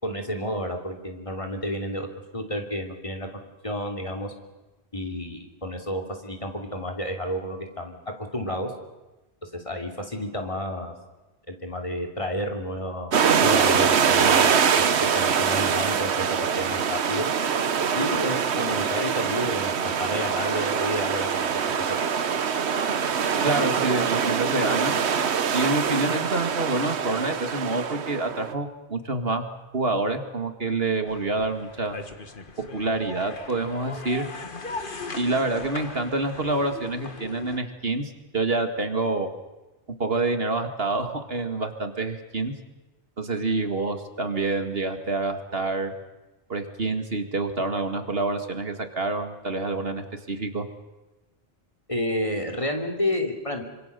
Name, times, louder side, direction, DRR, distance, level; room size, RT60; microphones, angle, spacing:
voice 1, 0.0-2.1 2.3-3.3 3.6-4.3 4.9-8.7 9.4-10.9 11.5-17.3 17.9-22.0 51.9-53.6, equal, 30° left, 3 dB, 3.0 m, -31 dB
sound 1, 13.1-28.5, right 7 dB, 80° right, 1.3 m, -24 dB
voice 2, 23.4-25.0 25.5-29.5 29.7-31.9 32.7-34.3 35.2-39.3 40.0-42.5 43.2-45.9 46.5-50.7, right 2 dB, 60° right, 6 dB, 2.3 m, -27 dB
sound 2, 31.1-37.6, left 3 dB, 50° left, 1.8 m, -39 dB
26.5 x 26.0 x 6.8 m, 1.1 s
omnidirectional pair, 1.1 m